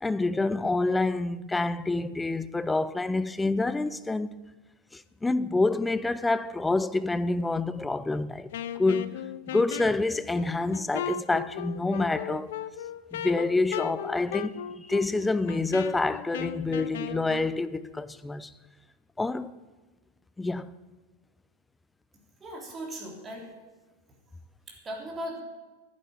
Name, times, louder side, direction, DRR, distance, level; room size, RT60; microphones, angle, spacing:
voice 1, 0.0-4.4 4.9-9.2 9.5-12.5 13.1-18.5 19.2-19.5 20.4-20.7, left 3 dB, 10° left, 0.6 m, -27 dB
Wind instrument woodwind instrument, 8.5-17.5, left 10 dB, 55° left, 0.6 m, -37 dB
voice 2, 22.4-23.5 24.7-25.4, equal, 20° right, 3.3 m, -38 dB
11.0 x 10.5 x 8.4 m
figure-of-eight pair, 90°, 0 cm